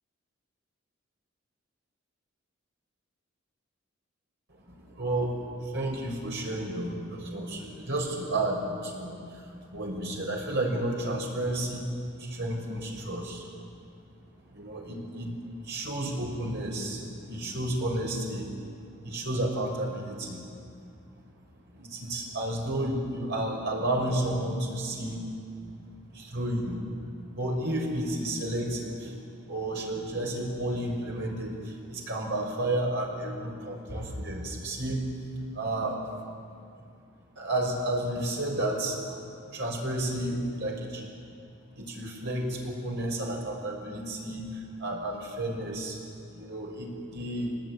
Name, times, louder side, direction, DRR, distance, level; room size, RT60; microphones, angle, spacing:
voice 1, 4.7-11.9 12.2-13.5 14.5-15.3 15.6-18.5 19.0-20.4 21.7-25.2 25.6-25.7 26.1-26.8 27.3-35.1 35.5-36.0 37.4-41.0 41.8-46.0 46.3-47.6, right 1 dB, 60° right, 0 dB, 6.0 m, -32 dB
24.5 x 20.0 x 9.6 m, 2.4 s
head